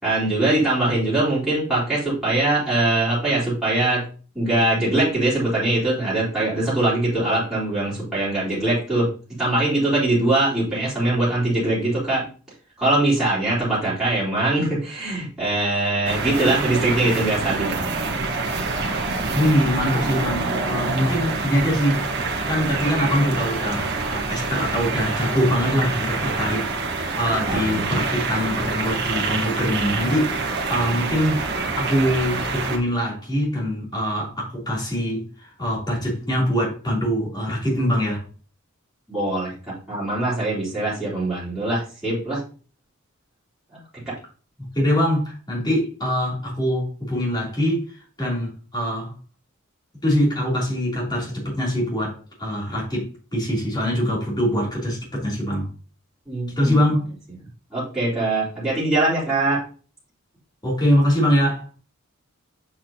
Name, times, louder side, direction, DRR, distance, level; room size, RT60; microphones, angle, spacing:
voice 1, 0.0-4.1 4.3-9.1 9.4-12.2 12.8-17.8 27.5-28.0 39.1-39.5 39.9-42.4 44.1-44.2 56.3-56.8 57.7-59.6, right 2 dB, 5° right, 3.9 m, -22 dB
sound 1, 16.0-32.8, right 3 dB, 55° right, 1.4 m, -26 dB
voice 2, 19.3-30.4 30.7-31.4 31.7-38.2 44.6-49.1 50.0-55.7 56.6-57.1 60.6-61.7, equal, 20° left, 3.1 m, -23 dB
7.3 x 6.1 x 2.8 m
head